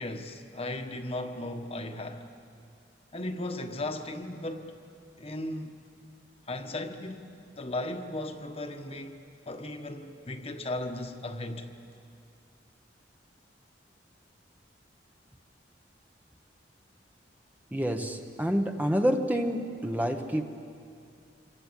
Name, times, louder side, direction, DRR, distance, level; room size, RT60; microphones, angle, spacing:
voice 1, 0.0-2.3 3.1-4.8 5.2-5.7 6.5-9.2 9.5-11.7, left 1 dB, 35° left, 1.4 m, -36 dB
voice 2, 17.7-20.4, equal, 10° right, 1.0 m, -28 dB
27.0 x 24.0 x 8.2 m
head